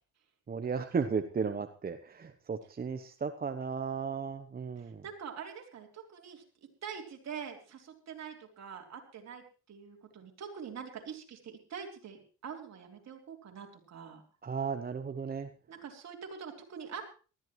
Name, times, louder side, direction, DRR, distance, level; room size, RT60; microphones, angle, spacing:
voice 1, 0.5-5.0 14.4-15.5, right 5 dB, 30° right, 8 dB, 0.9 m, -35 dB
voice 2, 4.8-6.4 6.8-14.2 15.7-17.0, right 7 dB, 60° right, 2 dB, 3.6 m, -45 dB
19.0 x 14.0 x 3.2 m, 0.35 s
cardioid pair, 90°, 30 cm